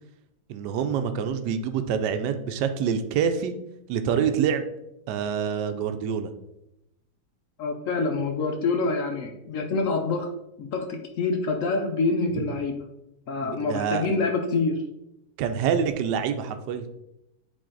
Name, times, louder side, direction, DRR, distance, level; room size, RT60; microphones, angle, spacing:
voice 1, 0.5-3.5 3.9-4.7 5.1-6.3 13.4-14.1 15.4-16.8, right 7 dB, 80° right, 8 dB, 1.2 m, -26 dB
voice 2, 7.6-10.3 10.6-12.8 13.3-14.8, left 3 dB, 60° left, 5 dB, 0.9 m, -26 dB
7.6 x 4.1 x 3.9 m, 0.86 s
omnidirectional pair, 1.8 m